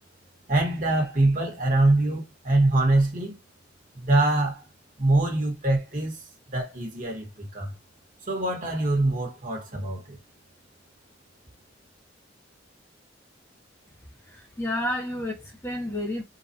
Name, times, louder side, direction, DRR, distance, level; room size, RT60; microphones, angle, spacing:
voice 1, 0.5-3.4 3.9-4.6 5.0-6.2 6.5-7.7 8.3-10.2, right 2 dB, 45° right, 1.4 m, -24 dB
voice 2, 14.2-16.2, left 1 dB, 15° left, 0.8 m, -30 dB
3.9 x 2.4 x 2.8 m
head